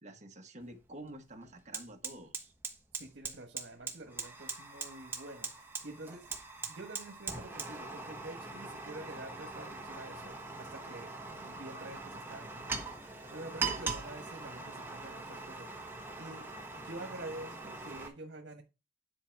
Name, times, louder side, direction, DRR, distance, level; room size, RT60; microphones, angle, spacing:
voice 1, 0.0-2.5, right 1 dB, 40° right, 1.4 m, -49 dB
Fire, 0.6-0.7 1.1-18.1, right 3 dB, 15° right, 1.2 m, -42 dB
voice 2, 3.0-6.3 6.7-12.9 13.3-15.7 16.2-16.5 16.7-18.6, right 2 dB, 80° right, 1.4 m, -47 dB
10.5 x 4.5 x 4.7 m
head